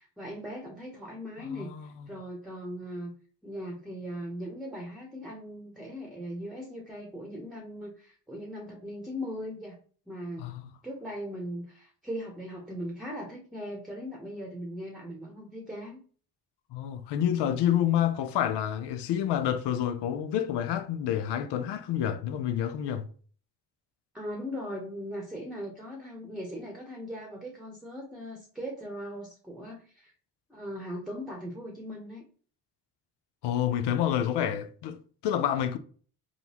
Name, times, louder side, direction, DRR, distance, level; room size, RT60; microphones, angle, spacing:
voice 1, 0.0-3.1 3.4-9.7 10.1-10.4 10.8-16.0 24.1-30.1 30.5-32.2, equal, ahead, 1.0 m, -39 dB
voice 2, 1.5-2.1 10.4-10.6 16.7-23.1 33.4-35.8, left 10 dB, 65° left, 0.6 m, -28 dB
3.8 x 2.3 x 2.9 m
hypercardioid pair, 45°, 45 cm